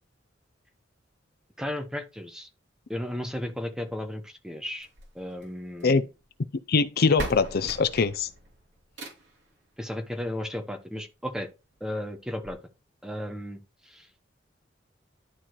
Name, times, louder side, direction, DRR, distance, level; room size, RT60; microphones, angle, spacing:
voice 1, 1.6-2.5 2.9-4.9 5.1-6.0 9.8-11.5 11.8-12.6 13.0-14.1, left 1 dB, 5° right, 1.1 m, -34 dB
sound 1, 4.8-6.0 6.8-6.9 7.2-9.5 10.8-10.9 11.4-11.5 11.7-11.8 12.4-12.5, right 1 dB, 70° right, 3.1 m, -39 dB
voice 2, 6.7-8.3, left 4 dB, 55° left, 0.5 m, -22 dB
11.5 x 4.3 x 3.0 m
head